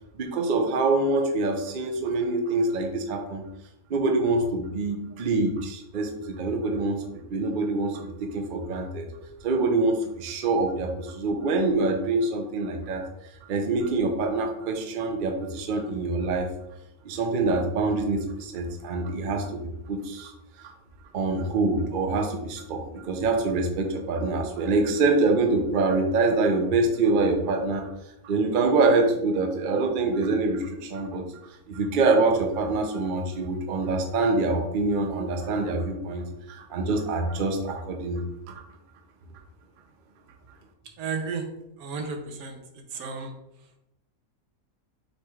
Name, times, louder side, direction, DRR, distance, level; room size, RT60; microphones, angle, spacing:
voice 1, 0.1-3.4 3.9-9.1 9.4-13.1 13.5-16.5 17.0-20.3 20.6-20.7 21.1-27.9 28.2-31.3 31.7-38.3, right 3 dB, 55° right, 3 dB, 0.5 m, -25 dB
voice 2, 41.0-41.4 41.8-42.6 42.9-43.3, right 5 dB, 85° right, 4 dB, 1.2 m, -32 dB
6.6 x 3.1 x 2.3 m, 0.86 s
omnidirectional pair, 1.5 m